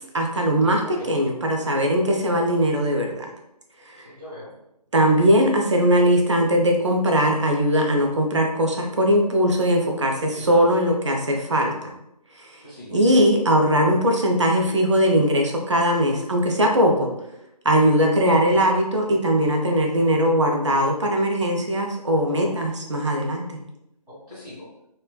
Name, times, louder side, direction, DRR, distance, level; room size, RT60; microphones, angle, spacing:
voice 1, 0.1-3.3 3.9-4.1 4.9-11.9 12.4-12.5 12.9-17.1 17.6-23.6, equal, 45° right, 1 dB, 0.4 m, -20 dB
voice 2, 4.0-4.5 10.3-10.5 12.6-13.0 16.8-16.9 22.3-22.7 24.1-24.7, left 1 dB, 5° right, -16 dB, 1.1 m, -41 dB
3.1 x 2.2 x 2.2 m, 0.85 s
figure-of-eight pair, 155°, 20 cm